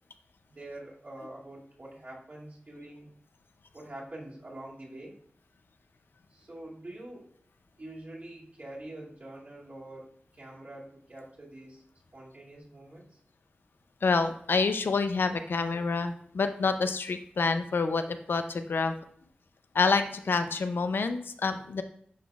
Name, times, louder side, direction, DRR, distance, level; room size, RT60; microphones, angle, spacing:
voice 1, 0.5-3.1 3.7-5.2 6.3-7.3 7.8-11.8 12.1-13.2, right 1 dB, 50° right, -6 dB, 2.2 m, -45 dB
voice 2, 14.0-18.9 19.7-21.8, left 4 dB, 80° left, 9 dB, 0.4 m, -27 dB
11.0 x 3.9 x 2.3 m, 0.62 s
wide cardioid pair, 70°, 4 cm